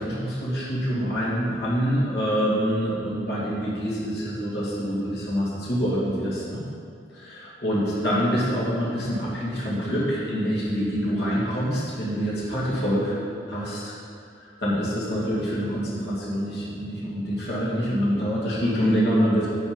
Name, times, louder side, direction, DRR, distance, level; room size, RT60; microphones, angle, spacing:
voice 1, 0.0-6.6 7.1-13.1 13.5-13.9 14.4-19.5, equal, 65° left, -7 dB, 2.1 m, -26 dB
9.0 x 5.2 x 5.1 m, 2.3 s
head